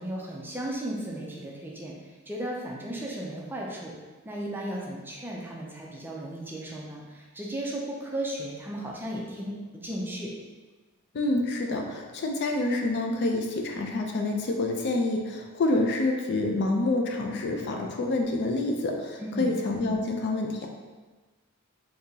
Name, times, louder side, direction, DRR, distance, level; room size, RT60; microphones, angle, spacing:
voice 1, 0.0-3.9 4.2-10.3 19.2-19.5, right 1 dB, 10° right, -3 dB, 0.5 m, -35 dB
voice 2, 11.1-20.7, left 2 dB, 50° left, 2 dB, 0.4 m, -27 dB
3.7 x 2.8 x 2.8 m, 1.3 s
head